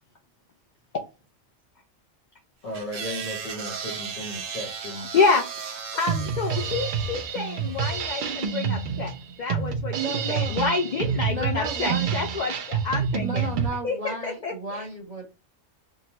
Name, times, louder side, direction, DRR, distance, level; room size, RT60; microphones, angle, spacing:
voice 1, 2.6-5.1, equal, 45° left, 0.8 m, -35 dB
sound 1, 2.7-8.1, right 6 dB, 80° right, 1.1 m, -36 dB
voice 2, 5.1-9.1 9.4-13.5 13.8-14.8, left 4 dB, 70° left, 0.4 m, -28 dB
Drum kit, 6.1-13.7, right 6 dB, 65° right, 0.5 m, -28 dB
voice 3, 9.9-10.5 11.3-12.1 13.2-15.2, right 3 dB, 35° right, 0.9 m, -33 dB
3.7 x 2.1 x 2.8 m
omnidirectional pair, 1.3 m